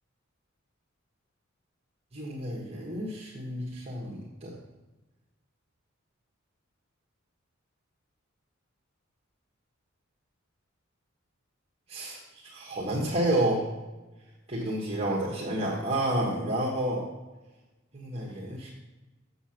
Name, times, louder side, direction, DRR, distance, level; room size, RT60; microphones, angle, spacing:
voice 1, 2.1-4.6 11.9-13.7 14.5-17.1 17.9-18.7, right 1 dB, 30° right, -5 dB, 1.4 m, -30 dB
7.7 x 7.0 x 5.8 m, 1.1 s
head